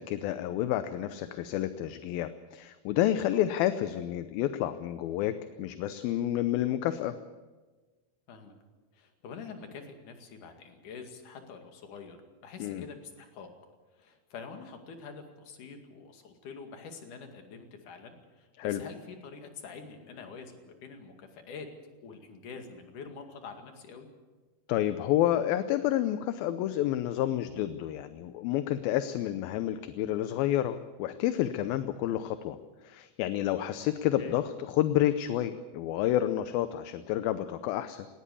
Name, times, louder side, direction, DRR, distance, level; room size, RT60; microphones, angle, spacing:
voice 1, 0.0-7.1 12.6-12.8 18.6-18.8 24.7-32.6 32.8-38.1, left 12 dB, 75° left, 11 dB, 2.4 m, -29 dB
voice 2, 8.9-12.2 12.4-13.5 13.9-21.7 22.0-24.1 34.2-34.4, left 5 dB, 55° left, 5 dB, 3.5 m, -46 dB
18.5 x 18.5 x 8.5 m, 1.3 s
omnidirectional pair, 4.6 m